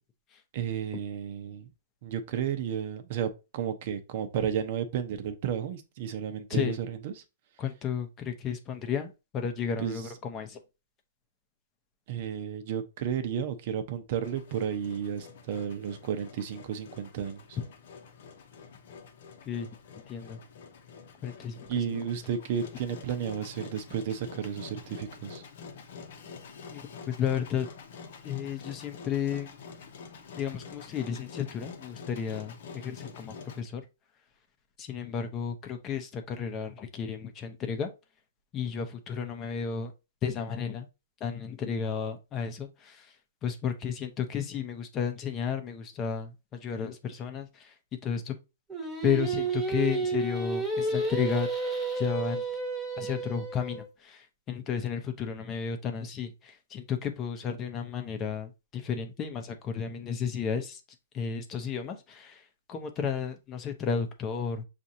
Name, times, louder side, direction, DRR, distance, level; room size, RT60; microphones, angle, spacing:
voice 1, 0.5-1.7 2.0-7.2 9.8-10.1 12.1-17.6 21.7-25.4, right 8 dB, 50° right, 0.7 m, -33 dB
voice 2, 7.6-10.6 19.5-19.7 20.1-20.4 21.2-21.6 21.9-22.0 26.7-27.7 28.2-29.5 30.4-33.8 34.8-37.9 38.5-39.9 40.2-40.9 41.2-42.7 43.4-46.3 46.6-47.5 48.0-48.3 49.0-51.5 52.0-52.4 53.0-53.8 54.5-56.3 56.7-60.8 61.1-62.3 62.7-64.6, left 7 dB, 25° left, 0.7 m, -32 dB
Engine, 14.2-33.6, left 5 dB, 60° left, 0.8 m, -47 dB
Singing, 48.7-53.9, right 3 dB, 5° right, 1.0 m, -31 dB
6.1 x 2.5 x 2.7 m
hypercardioid pair, 145°, 0 cm